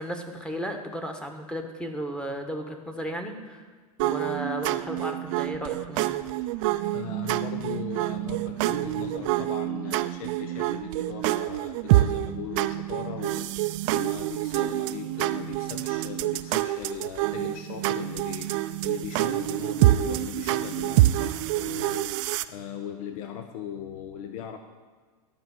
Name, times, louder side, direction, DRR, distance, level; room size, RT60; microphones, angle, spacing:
voice 1, 0.0-3.6 4.0-6.2, equal, 5° left, 3 dB, 1.2 m, -34 dB
sound 1, 4.0-22.4, right 16 dB, 55° right, 0.5 m, -27 dB
voice 2, 6.9-24.6, left 8 dB, 65° left, 7 dB, 0.8 m, -38 dB
12.0 x 5.2 x 7.5 m, 1.5 s
hypercardioid pair, 115°, 20 cm